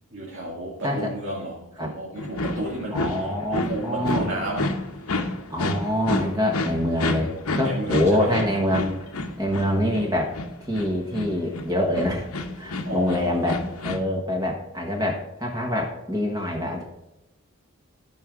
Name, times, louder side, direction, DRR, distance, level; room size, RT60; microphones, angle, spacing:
voice 1, 0.1-5.3 7.6-8.4 12.8-13.5, right 1 dB, 55° right, 2.2 m, -32 dB
sound 1, 2.2-14.0, left 2 dB, 85° left, 1.0 m, -30 dB
voice 2, 2.9-4.3 5.5-9.0 9.4-10.3 10.7-12.3 12.6-16.8, left 1 dB, 15° right, 1.4 m, -25 dB
14.5 x 5.2 x 3.7 m
head